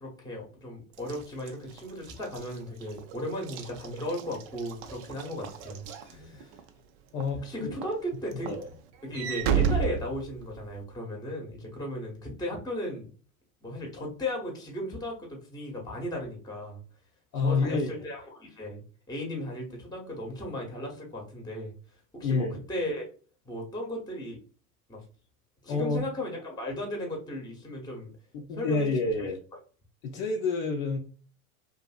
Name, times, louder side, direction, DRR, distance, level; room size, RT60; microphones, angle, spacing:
voice 1, 0.0-6.6 7.4-8.5 9.0-13.1 13.6-16.8 17.4-18.8 19.1-21.7 22.1-23.1 23.4-24.4 24.9-25.0 25.6-28.1 28.6-28.9, left 1 dB, 10° left, 0.9 m, -36 dB
Walk footsteps / Slam, 1.0-6.7 7.2-7.5 7.8-10.8, right 7 dB, 45° right, 0.5 m, -33 dB
voice 2, 6.1-6.4 7.1-7.7 8.4-8.7 17.3-18.0 22.2-22.6 25.7-26.1 28.3-29.4 30.0-31.0, left 4 dB, 50° left, 0.6 m, -29 dB
2.6 x 2.5 x 2.4 m
hypercardioid pair, 90°, 44 cm